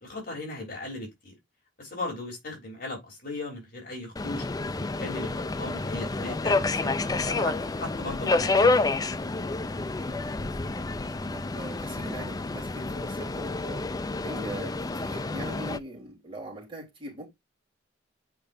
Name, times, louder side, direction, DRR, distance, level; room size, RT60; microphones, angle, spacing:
voice 1, 0.0-1.3 1.8-4.5 4.8-8.9, left 2 dB, 50° left, 3.4 m, -37 dB
Subway metro underground, 4.2-15.8, left 3 dB, 20° left, 0.4 m, -29 dB
voice 2, 11.1-13.9 14.2-17.3, right 1 dB, 30° right, 3.5 m, -42 dB
8.6 x 5.0 x 2.6 m
head